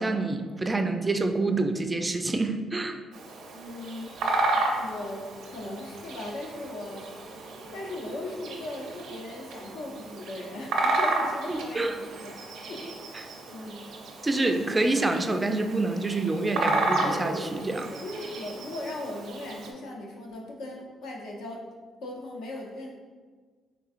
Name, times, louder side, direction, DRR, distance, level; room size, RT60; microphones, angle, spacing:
voice 1, 0.0-3.0 11.5-11.9 14.2-17.9, right 2 dB, 20° right, 6 dB, 0.3 m, -27 dB
Bird vocalization bird call bird song, 3.1-19.7, right 2 dB, 80° right, 0.6 m, -32 dB
voice 2, 3.5-4.2 4.7-7.1 7.7-12.3 12.7-13.0 13.5-14.2 17.9-21.6 22.0-22.9, left 1 dB, 85° left, -1 dB, 0.7 m, -38 dB
3.8 x 3.5 x 2.4 m, 1.5 s
cardioid pair, 90°, 0 cm